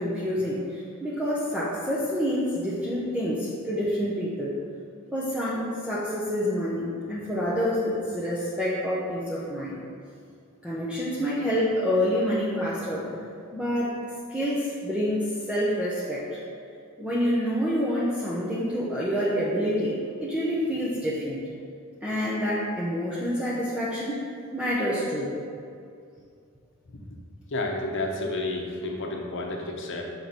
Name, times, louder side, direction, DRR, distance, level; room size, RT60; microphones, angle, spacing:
voice 1, 0.0-4.5 5.1-9.8 10.6-13.1 13.5-14.0 14.3-16.4 17.0-21.4 22.0-24.2 24.5-25.3, equal, 5° right, -8 dB, 0.7 m, -27 dB
voice 2, 27.5-30.0, left 2 dB, 60° left, 1 dB, 0.8 m, -30 dB
6.7 x 4.5 x 4.2 m, 2.4 s
head